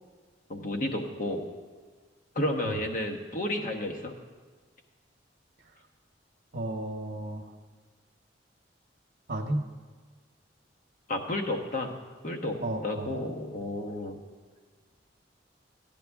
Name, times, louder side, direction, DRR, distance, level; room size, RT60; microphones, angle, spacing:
voice 1, 0.5-1.4 2.3-4.1 11.1-11.9 12.2-12.6 12.8-14.2, left 1 dB, 45° left, 3 dB, 1.2 m, -31 dB
voice 2, 6.5-7.5 9.3-9.7 12.6-13.2, right 1 dB, 55° right, 1 dB, 1.0 m, -33 dB
16.0 x 10.5 x 3.5 m, 1.5 s
head